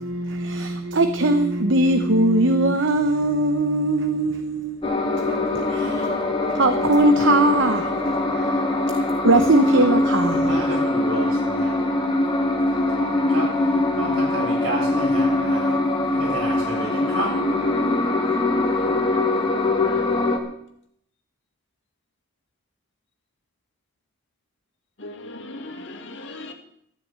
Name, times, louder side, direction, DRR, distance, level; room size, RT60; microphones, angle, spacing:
voice 1, 0.0-8.6 9.2-10.8, right 2 dB, 60° right, 0.9 m, -21 dB
sound 1, 4.8-20.4, left 2 dB, 25° left, 2.2 m, -22 dB
voice 2, 10.3-11.8 12.4-13.6 13.9-17.4, right 2 dB, 85° right, 7.9 m, -32 dB
voice 3, 19.1-20.3 25.0-26.5, left 2 dB, 55° left, 2.3 m, -39 dB
13.0 x 9.6 x 8.8 m
head